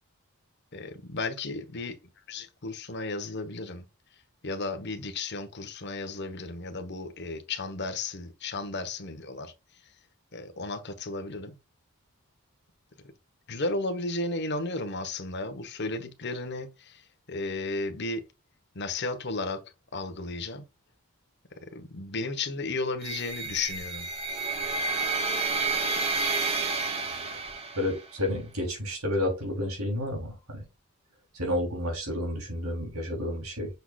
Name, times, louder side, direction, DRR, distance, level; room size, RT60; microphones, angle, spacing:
voice 1, 0.7-3.8 4.4-9.5 10.3-11.5 13.5-18.2 18.7-19.6 19.9-20.6 21.7-24.1, left 3 dB, 50° left, 1.1 m, -34 dB
sound 1, 23.0-28.1, right 4 dB, 25° right, 1.0 m, -30 dB
voice 2, 27.8-30.6 31.3-33.7, left 1 dB, 85° right, 3.3 m, -30 dB
6.9 x 6.2 x 2.4 m
head